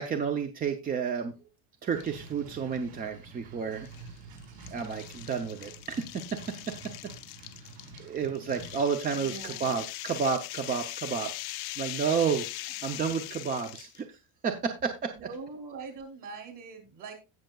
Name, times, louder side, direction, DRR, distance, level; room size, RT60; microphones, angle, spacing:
voice 1, 0.0-1.3 1.8-3.9 4.7-6.2 8.0-12.5 12.8-14.2 14.4-15.1, right 6 dB, 20° right, 6 dB, 0.5 m, -31 dB
sound 1, 1.9-2.3 2.8-2.9 3.9-14.0, left 19 dB, 55° left, 0.6 m, -41 dB
sound 2, 1.9-8.8, right 3 dB, 60° right, 4.8 m, -48 dB
voice 2, 9.1-9.7 15.1-17.1, right 4 dB, 45° right, 4 dB, 2.9 m, -43 dB
17.0 x 6.4 x 2.3 m, 0.26 s
cardioid pair, 170°, 45 cm